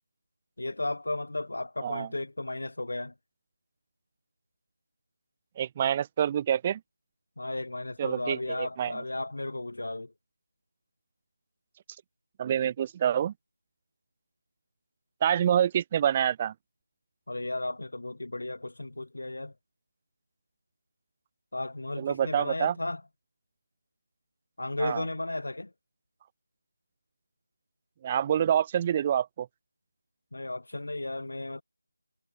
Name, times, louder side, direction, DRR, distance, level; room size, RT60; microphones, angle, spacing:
voice 1, 0.6-3.1 7.4-10.1 17.3-19.5 21.5-23.0 24.6-25.7 30.3-31.6, left 2 dB, 60° left, 6.9 m, -34 dB
voice 2, 5.6-6.8 8.0-9.0 12.4-13.3 15.2-16.5 22.0-22.7 24.8-25.0 28.0-29.5, right 9 dB, 20° right, 0.6 m, -27 dB
figure-of-eight pair, 165°, 0 cm